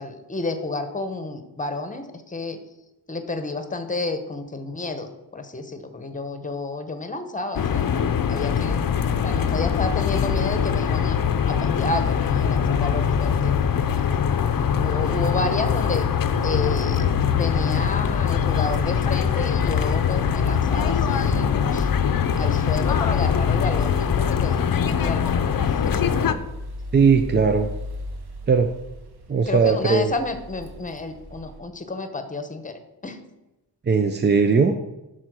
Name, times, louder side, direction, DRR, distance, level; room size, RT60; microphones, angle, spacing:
voice 1, 0.0-2.6 3.1-7.9 8.3-8.8 9.2-11.2 11.5-13.5 14.8-16.0 16.4-21.9 22.4-25.3 25.6-26.0 29.4-32.7 33.0-33.2, left 3 dB, 20° left, 8 dB, 0.8 m, -30 dB
sound 1, 7.5-26.3, left 7 dB, 55° left, 0.6 m, -22 dB
sound 2, 17.8-31.6, left 2 dB, 70° right, 1.2 m, -36 dB
voice 2, 26.9-27.7 28.5-28.7 29.3-30.1 33.9-34.7, right 5 dB, 25° right, 7 dB, 0.4 m, -18 dB
11.0 x 4.3 x 6.2 m, 0.97 s
wide cardioid pair, 165°, 41 cm